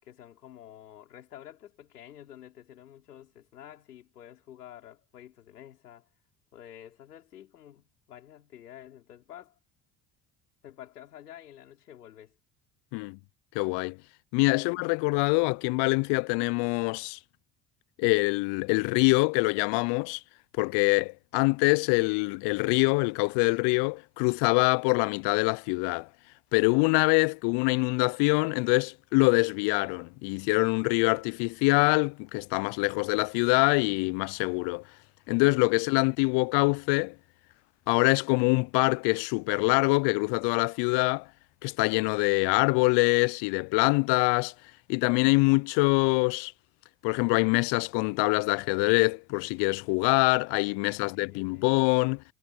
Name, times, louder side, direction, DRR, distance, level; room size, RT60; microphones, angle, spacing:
voice 1, 0.0-6.1 6.5-9.6 10.6-12.4 14.6-15.1 50.8-51.8, left 11 dB, 90° left, 5.3 m, -50 dB
voice 2, 13.5-14.0 14.3-17.2 18.0-20.2 20.6-26.1 26.5-34.8 35.3-37.1 37.9-41.3 41.6-44.5 44.9-46.5 47.0-52.2, left 30 dB, 65° left, 0.6 m, -24 dB
hypercardioid pair, 60°, 45 cm